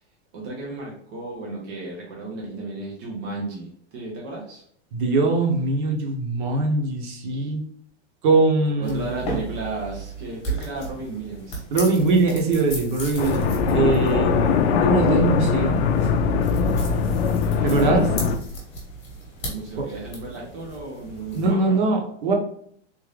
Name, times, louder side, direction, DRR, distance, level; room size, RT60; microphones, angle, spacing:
voice 1, 0.3-4.6 8.8-11.6 17.4-18.1 19.4-21.9, right 2 dB, 20° right, -3 dB, 0.3 m, -34 dB
voice 2, 4.9-7.6 8.2-9.1 11.7-15.8 17.6-18.1 19.8-19.9 21.3-22.3, right 3 dB, 45° right, 2 dB, 0.9 m, -22 dB
sound 1, 8.8-21.5, right 1 dB, 20° left, 1.1 m, -36 dB
sound 2, 13.2-18.4, left 5 dB, 65° left, 0.6 m, -21 dB
3.7 x 2.6 x 3.2 m, 0.63 s
supercardioid pair, 165°, 34 cm